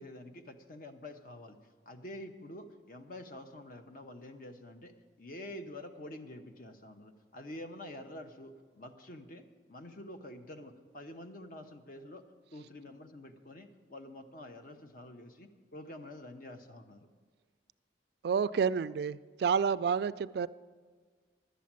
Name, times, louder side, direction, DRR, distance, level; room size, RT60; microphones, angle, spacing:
voice 1, 0.0-1.6 1.9-12.2 12.5-17.1, left 1 dB, 50° left, 0.9 m, -47 dB
voice 2, 18.2-20.5, right 6 dB, 60° right, 0.3 m, -29 dB
11.5 x 8.4 x 7.4 m
head